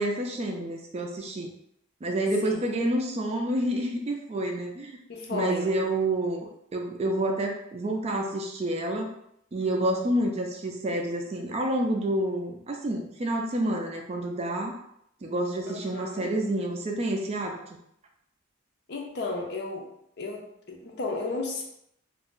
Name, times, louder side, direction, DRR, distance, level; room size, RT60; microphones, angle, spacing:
voice 1, 0.0-1.5 2.0-5.0 5.3-9.1 9.5-14.7 15.2-17.6, right 1 dB, 30° right, 2 dB, 0.3 m, -28 dB
voice 2, 5.1-5.6 15.6-16.3 18.9-19.9 20.2-21.6, left 3 dB, 50° left, 1 dB, 0.5 m, -33 dB
2.5 x 2.1 x 3.6 m, 0.74 s
head